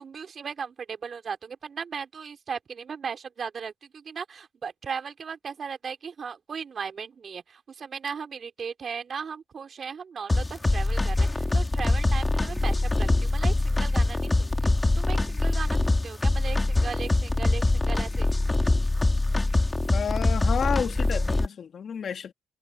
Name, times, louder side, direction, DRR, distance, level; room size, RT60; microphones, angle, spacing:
voice 1, 0.0-18.3, right 6 dB, 45° right, 3.4 m, -37 dB
sound 1, 10.3-21.5, left 2 dB, 15° left, 2.3 m, -24 dB
voice 2, 19.9-22.3, left 7 dB, 55° left, 2.0 m, -30 dB
cardioid pair, 90°, 0 cm